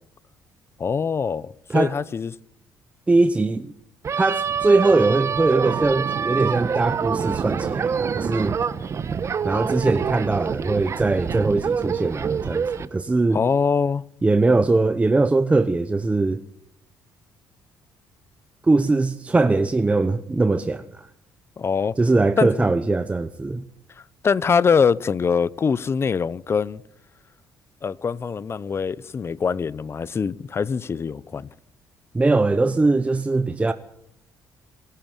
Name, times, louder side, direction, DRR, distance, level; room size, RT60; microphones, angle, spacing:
voice 1, 0.8-2.3 13.3-14.0 21.6-22.0 22.4-22.7 24.2-26.8 27.8-31.5, left 6 dB, 35° left, 0.7 m, -23 dB
voice 2, 3.1-3.7 4.1-8.6 9.4-13.4 14.2-16.4 18.6-21.1 22.0-23.6 32.1-33.7, right 3 dB, 20° right, 0.9 m, -21 dB
sound 1, 4.0-12.9, right 6 dB, 40° right, 1.2 m, -26 dB
26.0 x 11.5 x 9.1 m
cardioid pair, 90°, 7 cm